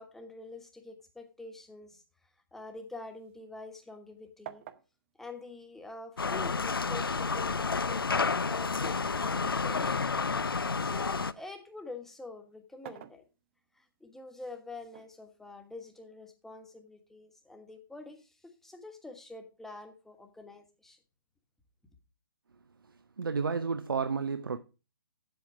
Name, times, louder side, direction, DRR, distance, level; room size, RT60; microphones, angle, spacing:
voice 1, 0.0-2.0 2.5-4.6 5.2-10.1 10.5-13.2 13.8-21.0, left 3 dB, 5° left, 1.3 m, -47 dB
sound 1, 2.8-4.1 4.4-6.4 7.3-9.8 10.3-11.6 12.6-13.8 14.9-15.9, right 11 dB, 35° right, 0.8 m, -52 dB
sound 2, 6.2-11.3, left 4 dB, 80° left, 0.6 m, -30 dB
voice 2, 22.8-24.6, right 5 dB, 70° right, 0.8 m, -32 dB
8.5 x 7.8 x 4.9 m
figure-of-eight pair, 135°, 12 cm